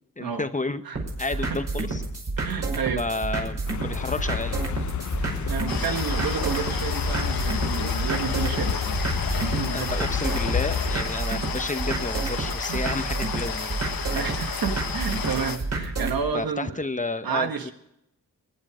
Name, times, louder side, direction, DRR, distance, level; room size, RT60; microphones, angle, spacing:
voice 1, 0.2-0.8 1.2-2.0 3.0-4.7 9.6-13.8 16.3-17.7, left 2 dB, 20° left, 10 dB, 0.9 m, -31 dB
sound 1, 0.9-16.2, right 3 dB, 45° right, 5.4 m, -30 dB
voice 2, 2.4-3.0 5.2-9.0 9.4-9.9 12.7-12.8 14.1-16.8 17.2-17.7, right 6 dB, 75° right, 6 dB, 1.6 m, -31 dB
sound 2, 3.7-11.0, left 8 dB, 55° left, 0.8 m, -30 dB
sound 3, 5.7-15.6, left 6 dB, 75° left, 1.6 m, -33 dB
22.5 x 10.0 x 5.0 m, 0.79 s
wide cardioid pair, 95°, 35 cm